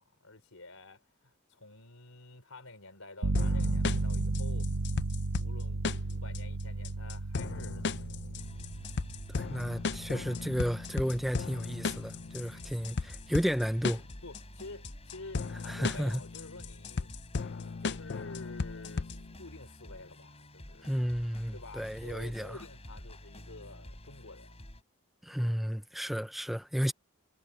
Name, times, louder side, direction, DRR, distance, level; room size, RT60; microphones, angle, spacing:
voice 1, 0.0-4.7 5.4-8.4 12.5-12.7 14.2-17.1 17.8-21.0 21.5-24.6, left 3 dB, 80° left, 4.0 m, -49 dB
sound 1, 3.2-13.8, right 2 dB, 75° right, 0.9 m, -35 dB
sound 2, 3.3-19.3, left 4 dB, 55° left, 0.5 m, -37 dB
sound 3, 8.4-24.8, left 1 dB, 30° left, 5.6 m, -50 dB
voice 2, 9.3-14.0 15.7-16.2 20.8-22.6 25.2-26.9, equal, ahead, 0.6 m, -32 dB
head